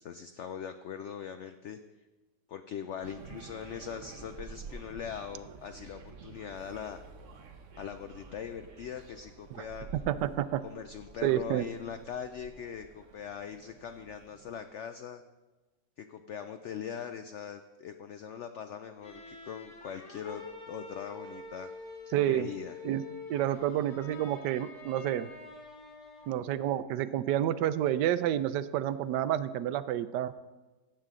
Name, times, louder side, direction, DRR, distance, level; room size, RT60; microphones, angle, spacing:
voice 1, 0.0-1.8 2.5-7.0 7.8-9.9 10.6-15.2 16.0-21.7 22.3-22.8, left 8 dB, 85° left, 8 dB, 0.6 m, -41 dB
sound 1, 3.0-14.6, right 4 dB, 55° right, 1.0 m, -50 dB
voice 2, 10.1-10.6 11.2-11.6 22.1-22.5 22.8-23.0 23.3-25.3 26.3-30.3, right 11 dB, 85° right, 14 dB, 1.2 m, -29 dB
sound 2, 19.0-26.5, left 3 dB, 45° left, 1.7 m, -47 dB
16.0 x 7.7 x 3.7 m, 1.2 s
omnidirectional pair, 1.8 m